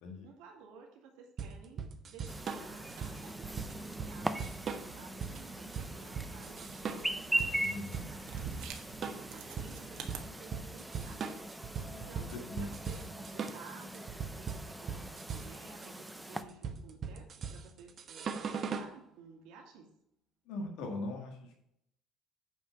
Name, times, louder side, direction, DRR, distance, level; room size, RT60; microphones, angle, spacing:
voice 1, 0.2-11.3 11.9-19.9, right 5 dB, 85° right, 0 dB, 2.3 m, -55 dB
sound 1, 1.4-18.9, right 6 dB, 35° right, 0.9 m, -40 dB
Chirp tweet, 2.3-16.4, right 1 dB, 5° right, 0.5 m, -41 dB
sound 2, 2.4-10.2, right 6 dB, 70° right, 1.3 m, -49 dB
voice 2, 7.6-8.1 11.8-11.9 12.2-12.7 13.0-13.1 20.5-21.5, left 2 dB, 80° left, 1 dB, 1.7 m, -41 dB
9.0 x 4.8 x 5.8 m, 0.76 s
cardioid pair, 155°, 0 cm